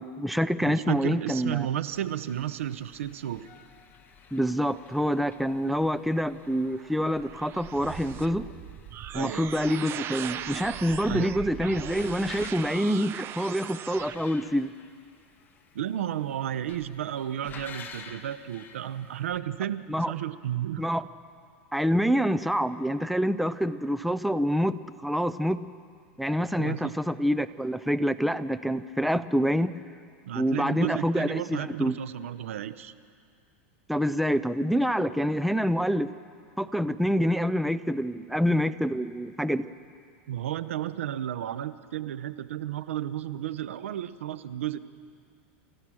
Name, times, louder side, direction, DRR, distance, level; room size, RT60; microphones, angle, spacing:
voice 1, 0.0-1.7 4.3-8.5 9.1-14.7 19.9-20.1 20.8-21.0 21.7-25.6 26.2-29.8 30.3-32.0 33.9-36.1 36.6-39.6, equal, ahead, 13 dB, 0.5 m, -26 dB
voice 2, 0.6-3.5 9.1-9.5 11.1-11.3 15.7-20.8 26.6-27.0 30.3-32.9 40.3-44.8, right 11 dB, 90° right, 15 dB, 0.8 m, -33 dB
sound 1, 1.9-19.4, left 6 dB, 30° left, 1.5 m, -51 dB
sound 2, 6.5-14.2, right 10 dB, 35° right, 0.7 m, -39 dB
29.0 x 14.5 x 6.3 m, 2.2 s
supercardioid pair, 125°, 7 cm